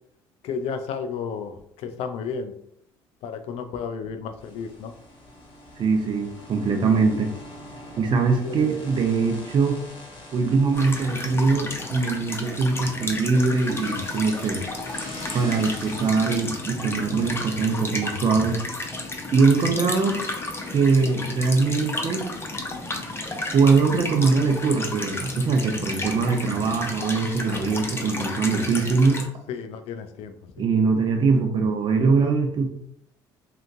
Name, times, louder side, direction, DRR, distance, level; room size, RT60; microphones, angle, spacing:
voice 1, 0.4-2.5 3.2-4.9 8.4-8.6 29.5-30.6, left 6 dB, 70° left, 8 dB, 0.4 m, -32 dB
sound 1, 4.4-18.6, left 2 dB, 50° left, 0.9 m, -44 dB
voice 2, 5.8-7.3 8.0-9.8 10.3-14.6 15.3-18.7 19.3-20.2 20.7-22.2 23.5-29.2 30.6-32.7, right 4 dB, 50° right, 3 dB, 0.6 m, -22 dB
sound 2, 10.7-29.3, left 2 dB, 20° left, 0.6 m, -32 dB
2.9 x 2.4 x 2.5 m, 0.71 s
supercardioid pair, 70°, 11 cm